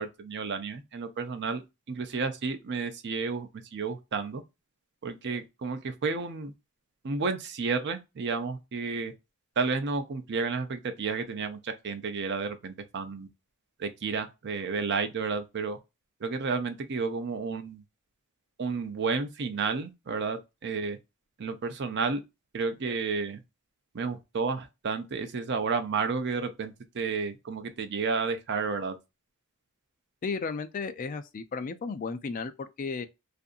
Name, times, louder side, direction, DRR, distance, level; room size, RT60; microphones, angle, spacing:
voice 1, 0.0-1.6 1.9-4.4 5.0-6.5 7.0-9.1 9.6-13.3 13.8-15.8 16.2-17.8 18.6-21.0 21.4-22.2 22.5-23.4 23.9-29.0, right 4 dB, 50° right, 0.5 m, -31 dB
voice 2, 30.2-33.1, left 4 dB, 40° left, 0.4 m, -34 dB
2.7 x 2.5 x 2.3 m
head